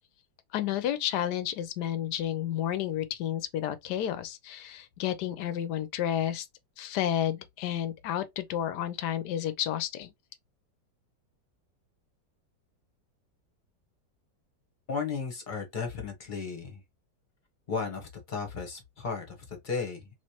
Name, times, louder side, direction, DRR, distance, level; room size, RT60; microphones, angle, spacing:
voice 1, 0.5-6.5 6.8-10.1, left 11 dB, 70° left, 1.1 m, -31 dB
voice 2, 14.9-16.8 17.7-20.1, left 5 dB, 35° left, 0.9 m, -35 dB
3.2 x 2.8 x 2.8 m
omnidirectional pair, 2.0 m